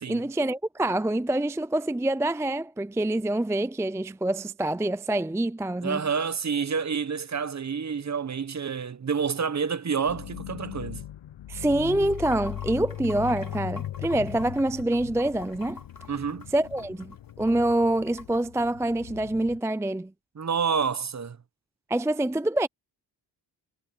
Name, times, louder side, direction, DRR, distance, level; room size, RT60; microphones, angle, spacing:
voice 1, 0.1-6.0 11.5-15.8 16.5-20.1 21.9-22.7, right 1 dB, 5° right, 0.5 m, -26 dB
voice 2, 5.8-11.0 16.1-16.5 20.4-21.4, right 6 dB, 35° right, 1.0 m, -28 dB
sound 1, 10.1-19.6, left 12 dB, 65° left, 1.0 m, -39 dB
Water / Sink (filling or washing), 11.9-18.4, left 3 dB, 45° left, 3.5 m, -47 dB
cardioid pair, 65°, 47 cm